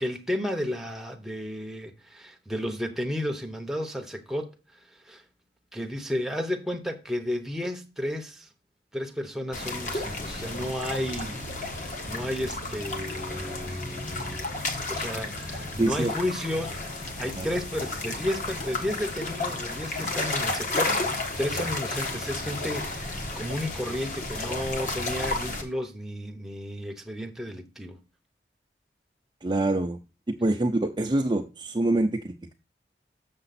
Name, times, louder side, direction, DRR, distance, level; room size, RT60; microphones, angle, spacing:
voice 1, 0.0-4.5 4.9-5.2 5.7-8.5 8.9-11.5 11.7-14.5 14.9-28.0, left 1 dB, ahead, 0.9 m, -33 dB
sound 1, 9.5-25.6, left 2 dB, 45° left, 1.5 m, -32 dB
voice 2, 15.8-16.1 17.4-17.5 29.4-30.0 30.4-32.5, right 2 dB, 25° right, 0.6 m, -25 dB
6.9 x 6.8 x 4.1 m
head